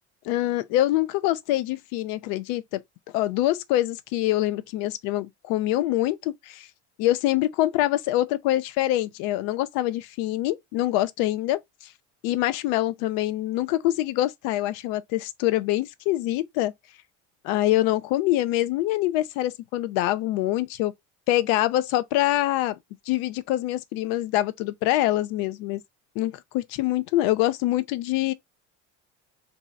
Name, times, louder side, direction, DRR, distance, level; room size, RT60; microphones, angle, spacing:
voice 1, 0.3-2.8 3.1-6.7 7.0-11.6 12.2-16.7 17.4-20.9 21.3-22.8 23.1-25.8 26.2-28.3, left 15 dB, 80° left, 0.5 m, -25 dB
2.7 x 2.4 x 4.0 m
supercardioid pair, 100°, 35 cm